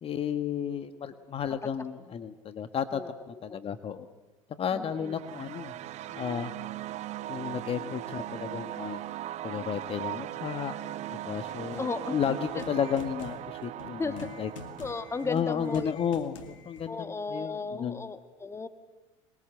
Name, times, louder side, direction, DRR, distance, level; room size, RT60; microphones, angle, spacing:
voice 1, 0.0-3.0 3.3-4.1 4.6-5.7 6.1-6.5 7.3-9.0 9.4-10.7 11.1-14.5 15.2-18.0, left 8 dB, 35° left, 11 dB, 1.5 m, -33 dB
voice 2, 4.7-5.2 11.7-12.2 12.5-12.6 14.0-14.1 14.8-15.9 16.9-18.7, left 4 dB, 15° left, 10 dB, 1.6 m, -35 dB
sound 1, 4.8-15.9, right 13 dB, 45° right, 0.8 m, -39 dB
sound 2, 11.7-16.9, left 5 dB, 75° left, 2.4 m, -48 dB
25.5 x 21.5 x 7.9 m, 1.1 s
hypercardioid pair, 80°, 16 cm